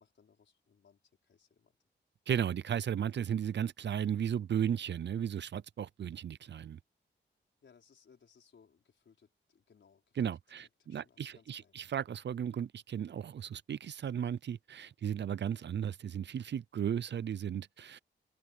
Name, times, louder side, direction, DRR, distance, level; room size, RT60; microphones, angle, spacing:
voice 1, 0.0-1.7 7.6-11.8, left 6 dB, 65° left, 5.1 m, -65 dB
voice 2, 2.3-6.8 10.2-18.0, right 9 dB, 60° right, 0.5 m, -35 dB
open air
wide cardioid pair, 95°, 20 cm